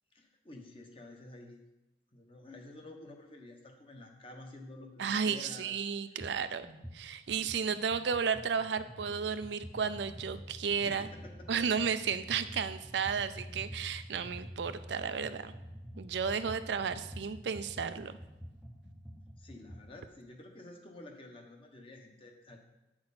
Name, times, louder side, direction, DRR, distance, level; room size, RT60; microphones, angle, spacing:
voice 1, 0.1-1.6 2.1-5.8 6.1-6.3 10.8-11.7 19.4-22.6, left 2 dB, 30° left, 2 dB, 1.0 m, -50 dB
voice 2, 5.0-6.7 6.9-11.1 11.5-15.5 16.0-18.2, right 6 dB, 85° right, 11 dB, 0.4 m, -33 dB
sound 1, 6.2-6.4 6.6-19.9, equal, 5° right, 0.6 m, -48 dB
8.6 x 6.1 x 4.1 m, 1.0 s
head